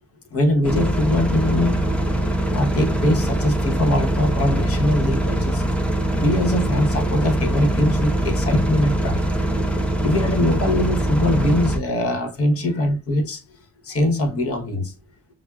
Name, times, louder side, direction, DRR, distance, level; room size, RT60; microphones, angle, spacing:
voice 1, 0.3-1.8 2.5-5.6 6.2-9.2 9.7-13.4 13.8-14.9, left 1 dB, 50° left, 1.0 m, -22 dB
sound 1, 0.6-11.8, right 1 dB, 5° left, 0.8 m, -22 dB
5.8 x 2.0 x 2.3 m
cardioid pair, 90°, 30 cm